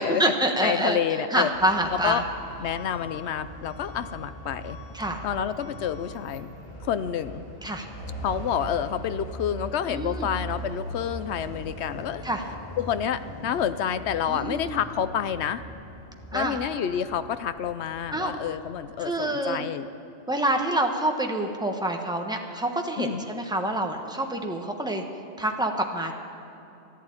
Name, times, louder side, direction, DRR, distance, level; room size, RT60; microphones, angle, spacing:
voice 1, 0.0-1.0 1.3-2.2 4.9-5.2 7.6-7.9 9.9-10.3 12.2-12.4 14.3-14.7 16.3-16.6 18.1-18.3 19.0-19.6 20.3-25.0 25.4-26.1, right 1 dB, 5° right, 3 dB, 1.1 m, -27 dB
voice 2, 0.6-1.5 1.9-2.2 2.6-4.8 5.2-6.5 6.8-7.4 8.2-12.2 12.8-15.6 16.3-19.9 23.0-23.2, left 9 dB, 70° left, 12 dB, 0.9 m, -28 dB
Truck / Alarm, 1.5-18.8, right 1 dB, 55° left, 3.0 m, -40 dB
14.5 x 11.0 x 8.7 m, 2.9 s
omnidirectional pair, 1.2 m